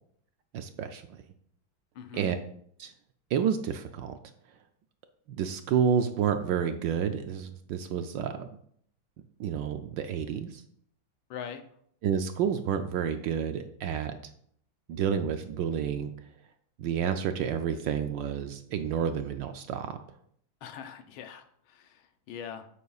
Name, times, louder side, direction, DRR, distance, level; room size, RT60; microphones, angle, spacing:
voice 1, 0.5-1.0 2.1-2.4 2.8-2.9 3.3-4.1 5.4-8.5 9.4-10.6 12.0-14.2 14.9-16.1 16.8-20.0, right 8 dB, 75° right, 8 dB, 1.2 m, -29 dB
voice 2, 1.9-2.3 11.3-11.6 20.6-22.7, left 8 dB, 75° left, 7 dB, 1.6 m, -42 dB
9.3 x 8.2 x 2.4 m, 0.66 s
omnidirectional pair, 2.3 m